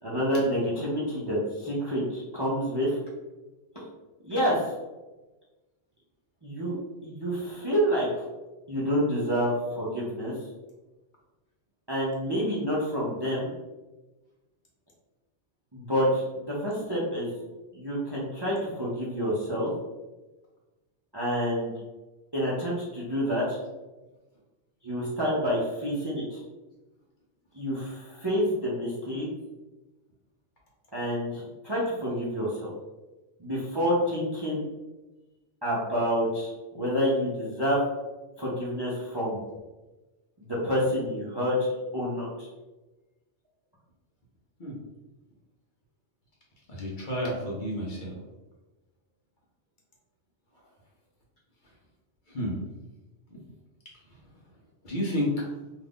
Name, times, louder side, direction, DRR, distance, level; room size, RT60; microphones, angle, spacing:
voice 1, 0.0-3.0 3.7-3.9 4.2-4.7 6.4-6.7 7.0-8.1 8.7-10.3 11.9-13.5 15.7-17.3 17.7-19.7 21.1-21.7 22.3-23.6 24.8-26.4 27.5-29.3 30.9-32.7 33.4-34.6 35.6-37.8 38.4-39.4 40.4-42.5, equal, 30° right, -6 dB, 0.5 m, -28 dB
voice 2, 46.7-48.1 52.3-52.6 54.8-55.4, left 1 dB, 50° left, -3 dB, 0.8 m, -30 dB
2.5 x 2.4 x 3.5 m, 1.1 s
omnidirectional pair, 1.2 m